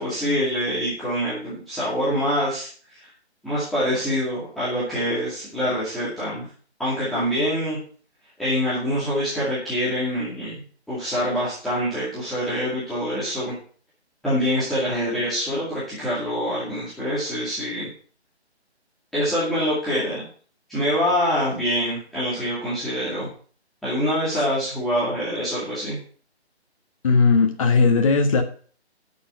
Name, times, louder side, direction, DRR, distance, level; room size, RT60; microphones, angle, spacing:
voice 1, 0.0-2.7 3.0-3.1 3.4-6.5 6.8-7.8 8.4-13.5 14.2-17.9 19.1-20.2 20.7-23.3 23.8-26.0, equal, ahead, -13 dB, 2.3 m, -25 dB
voice 2, 27.0-28.4, left 4 dB, 30° left, 4 dB, 1.4 m, -17 dB
11.5 x 6.3 x 5.9 m, 0.43 s
figure-of-eight pair, 160°, 34 cm